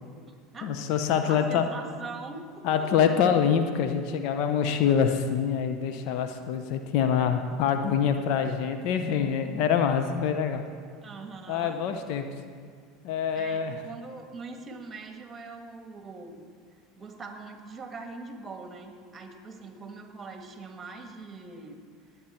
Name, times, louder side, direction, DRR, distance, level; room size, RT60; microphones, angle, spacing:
voice 1, 0.0-0.7 1.3-3.0 4.8-4.9 11.0-11.8 13.3-16.5 17.0-21.8, right 3 dB, 25° right, 5 dB, 1.7 m, -42 dB
voice 2, 0.6-1.7 2.6-10.6 11.5-12.3 13.0-13.8, left 7 dB, 60° left, 7 dB, 0.9 m, -25 dB
19.0 x 8.5 x 4.4 m, 2.1 s
hypercardioid pair, 80°, 0 cm